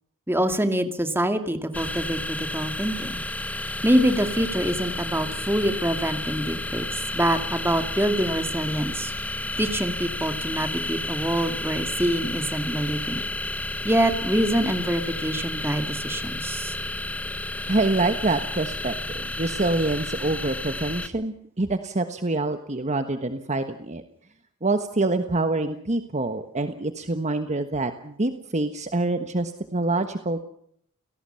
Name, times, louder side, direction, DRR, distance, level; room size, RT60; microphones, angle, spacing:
voice 1, 0.3-3.2 3.8-9.1 9.6-13.3 13.8-16.7, right 1 dB, 10° right, 7 dB, 2.4 m, -25 dB
sound 1, 1.7-21.1, left 2 dB, 5° left, 0.9 m, -31 dB
voice 2, 17.7-24.0 24.6-30.4, right 2 dB, 30° right, 8 dB, 1.3 m, -26 dB
29.5 x 18.5 x 5.8 m, 0.66 s
head